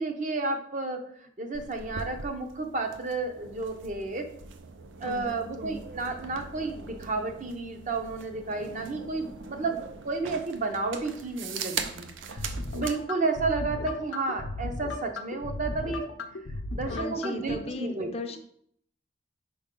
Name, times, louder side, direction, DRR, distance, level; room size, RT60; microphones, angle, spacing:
voice 1, 0.0-4.3 5.0-16.1 16.7-18.4, right 3 dB, 40° right, 5 dB, 0.7 m, -32 dB
sound 1, 1.5-13.0, right 5 dB, 80° right, 0.6 m, -41 dB
voice 2, 5.0-5.4 16.9-18.4, left 3 dB, 30° left, 6 dB, 0.5 m, -37 dB
sound 2, 12.4-17.6, left 2 dB, 90° left, 0.6 m, -36 dB
5.1 x 5.1 x 3.7 m, 0.65 s
head